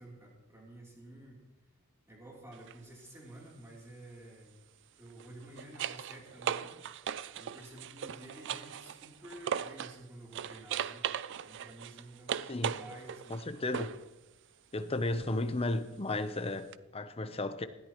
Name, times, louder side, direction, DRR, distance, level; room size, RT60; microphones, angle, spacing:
voice 1, 0.0-1.4 2.1-4.5 5.0-6.7 7.3-11.1 11.4-13.4, right 1 dB, 15° right, -3 dB, 3.3 m, -51 dB
sound 1, 2.5-2.8 5.1-10.0 10.3-14.1 16.7-16.8, right 8 dB, 55° right, 0.4 m, -38 dB
voice 2, 13.3-13.9 14.7-17.7, left 2 dB, 25° left, 10 dB, 0.7 m, -34 dB
19.5 x 13.5 x 3.1 m, 1.1 s
head